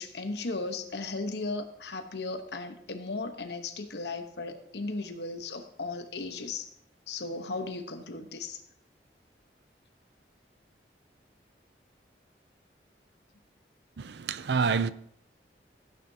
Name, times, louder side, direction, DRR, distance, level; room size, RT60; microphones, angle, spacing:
voice 1, 0.0-6.7 7.1-8.6, left 3 dB, 75° left, 1.1 m, -36 dB
voice 2, 14.0-14.9, right 5 dB, 80° right, 0.5 m, -27 dB
16.5 x 9.1 x 2.8 m
head